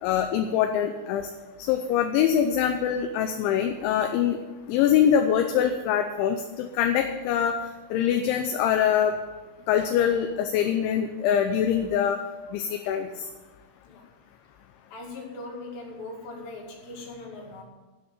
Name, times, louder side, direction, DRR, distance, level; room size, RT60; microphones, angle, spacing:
voice 1, 0.0-1.3 1.7-4.4 4.7-7.5 7.9-9.2 9.7-12.2 12.5-13.3, left 9 dB, 80° left, 6 dB, 2.9 m, -24 dB
voice 2, 14.9-17.6, left 2 dB, 55° left, -1 dB, 3.8 m, -40 dB
13.0 x 6.3 x 8.9 m, 1.2 s
omnidirectional pair, 5.7 m